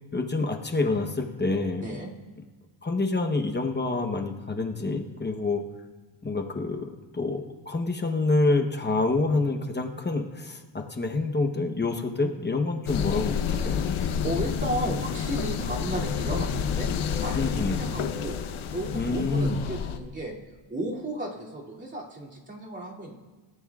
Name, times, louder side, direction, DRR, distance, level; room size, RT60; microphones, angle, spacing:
voice 1, 0.1-1.9 2.8-5.6 6.2-13.8 17.4-17.8 18.9-19.6, left 3 dB, 20° left, 4 dB, 1.0 m, -27 dB
voice 2, 1.8-2.1 13.9-16.9 17.2-20.4 20.7-23.1, right 1 dB, 20° right, -4 dB, 2.6 m, -34 dB
sound 1, 12.9-20.0, left 7 dB, 80° left, 1.0 m, -29 dB
26.0 x 14.0 x 2.4 m, 1.3 s
wide cardioid pair, 150°, 48 cm